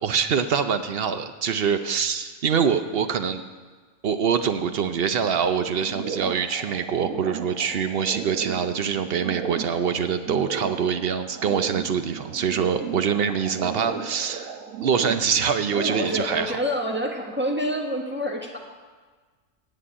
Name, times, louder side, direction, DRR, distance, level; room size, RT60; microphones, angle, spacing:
voice 1, 0.0-3.4 4.0-14.5 14.8-16.6, right 7 dB, 55° right, 9 dB, 0.8 m, -24 dB
sound 1, 5.6-16.4, right 6 dB, 80° right, 1.3 m, -36 dB
voice 2, 15.7-18.6, equal, 10° right, -1 dB, 1.4 m, -27 dB
9.6 x 7.7 x 8.7 m, 1.4 s
omnidirectional pair, 1.4 m